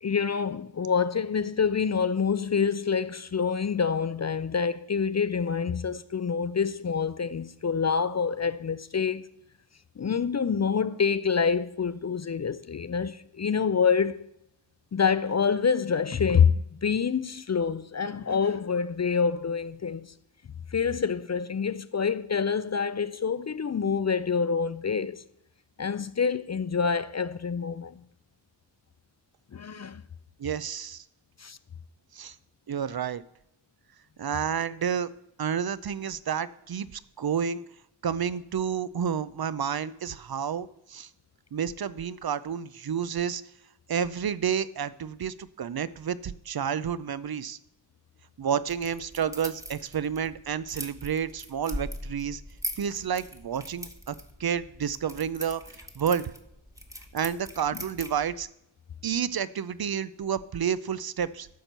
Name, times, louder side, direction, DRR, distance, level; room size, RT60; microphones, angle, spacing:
voice 1, 0.0-9.2 10.0-14.2 14.9-20.1 20.7-25.2 25.8-28.0 29.5-30.0 31.4-31.6, left 6 dB, 40° left, 0.4 m, -27 dB
voice 2, 30.4-31.0 32.1-32.4 32.7-33.2 34.2-35.1 35.4-37.6 38.0-41.1 41.5-43.4 43.9-47.6 48.4-52.4 52.8-56.3 57.1-58.5 59.0-61.5, right 8 dB, 55° right, 0.5 m, -30 dB
sound 1, 48.7-58.4, equal, 5° right, 1.1 m, -41 dB
12.5 x 4.5 x 6.6 m
wide cardioid pair, 85°, 46 cm